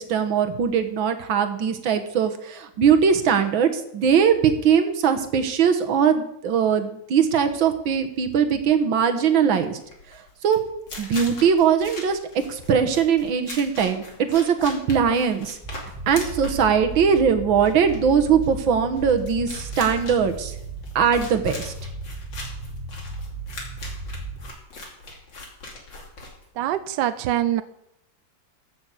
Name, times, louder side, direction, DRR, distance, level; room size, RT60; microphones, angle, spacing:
voice 1, 0.0-9.8 10.4-10.6 11.0-12.2 12.5-14.0 14.3-15.6 16.1-20.5 21.0-21.7, right 7 dB, 85° right, 7 dB, 2.0 m, -20 dB
sound 1, 9.4-26.8, left 2 dB, 70° left, 3.4 m, -41 dB
sound 2, 15.6-24.5, right 3 dB, 15° right, 4.2 m, -36 dB
voice 2, 26.6-27.6, right 12 dB, 70° right, 12 dB, 1.2 m, -24 dB
14.0 x 6.4 x 7.8 m, 0.78 s
omnidirectional pair, 2.1 m